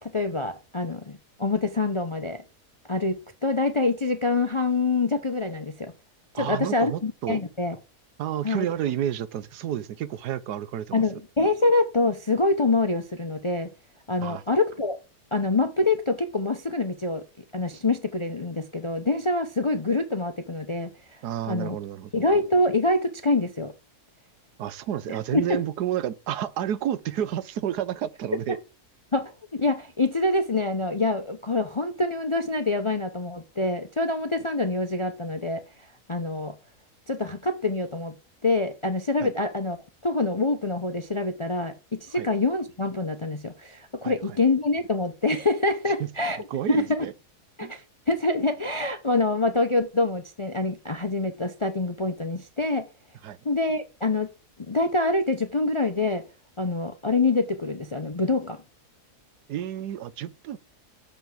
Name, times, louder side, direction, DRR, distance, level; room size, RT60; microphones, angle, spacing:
voice 1, 0.0-2.4 2.9-5.9 6.3-7.8 8.4-8.7 10.9-13.7 14.1-15.0 15.3-17.2 17.5-21.2 21.5-21.8 22.1-23.7 25.3-25.6 29.1-35.6 36.1-36.5 37.1-38.1 38.4-39.8 40.0-46.4 46.7-47.1 47.6-47.8 48.1-52.8 53.4-54.3 54.6-56.2 56.6-58.6, left 2 dB, 35° left, 0.5 m, -25 dB
voice 2, 6.3-7.4 8.2-11.2 14.2-14.4 21.2-22.2 24.6-28.6 39.2-39.3 42.1-42.3 44.0-44.4 46.0-46.1 46.5-47.1 47.6-47.7 53.2-53.4 59.5-60.6, right 10 dB, 85° right, 1.3 m, -30 dB
6.9 x 5.8 x 7.4 m
omnidirectional pair, 1.7 m